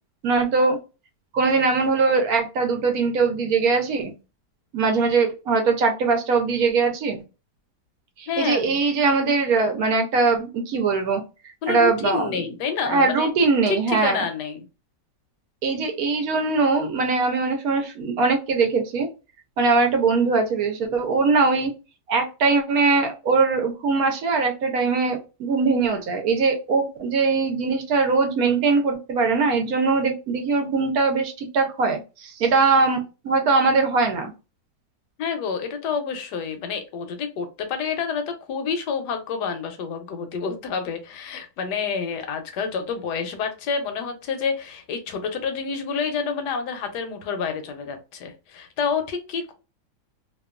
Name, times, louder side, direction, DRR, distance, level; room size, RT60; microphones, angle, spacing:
voice 1, 0.2-0.8 1.3-4.1 4.7-7.2 8.2-11.2 11.7-12.3 12.9-14.2 15.6-19.1 19.6-21.7 22.1-34.3, right 4 dB, 70° right, 4 dB, 1.0 m, -21 dB
voice 2, 8.3-8.6 11.6-13.3 13.7-14.6 35.2-49.5, left 5 dB, 80° left, 7 dB, 1.2 m, -28 dB
2.9 x 2.2 x 2.3 m, 0.30 s
omnidirectional pair, 1.8 m